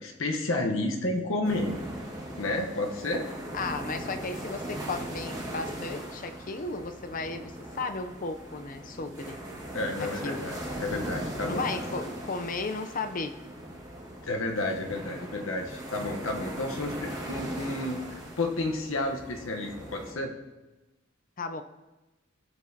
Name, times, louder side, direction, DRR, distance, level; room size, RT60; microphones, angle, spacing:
voice 1, 0.0-1.7 2.4-3.3 9.7-11.6 14.2-18.0 18.4-20.3, left 2 dB, 70° left, 2 dB, 1.0 m, -31 dB
sound 1, 1.4-20.1, right 1 dB, 20° right, 1.8 m, -39 dB
voice 2, 3.5-9.4 10.0-10.5 11.4-13.3 21.4-21.6, left 3 dB, 40° left, 8 dB, 0.6 m, -35 dB
16.5 x 7.2 x 2.8 m, 1.1 s
head